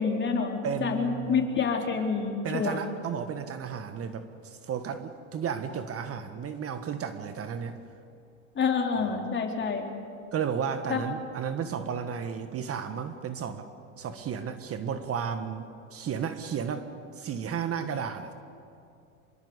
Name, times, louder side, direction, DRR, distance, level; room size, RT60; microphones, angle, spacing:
voice 1, 0.0-2.8 8.6-9.9 10.9-11.0, left 5 dB, 30° left, 2 dB, 4.0 m, -28 dB
voice 2, 0.6-1.6 2.4-7.8 9.0-9.1 10.3-13.7 14.0-18.3, right 7 dB, 35° right, 9 dB, 1.5 m, -33 dB
26.5 x 21.5 x 8.2 m, 2.5 s
hypercardioid pair, 95°, 40 cm